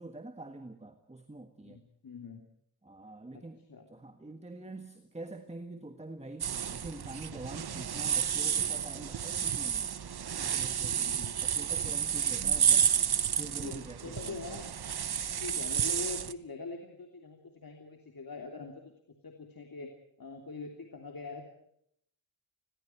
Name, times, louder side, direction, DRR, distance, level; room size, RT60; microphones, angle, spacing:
voice 1, 0.0-1.8 2.8-9.9 10.3-11.1 11.4-12.9 13.4-14.4, right 2 dB, 15° right, 7 dB, 1.7 m, -45 dB
voice 2, 1.6-2.4 3.3-3.4 3.7-3.9 10.9-11.4 13.6-14.7 15.4-18.9 19.2-19.9 20.2-21.4, left 3 dB, 50° left, 4 dB, 3.1 m, -43 dB
sound 1, 6.4-16.3, right 8 dB, 60° right, 1.0 m, -31 dB
29.5 x 21.5 x 4.6 m, 0.71 s
wide cardioid pair, 135°, 44 cm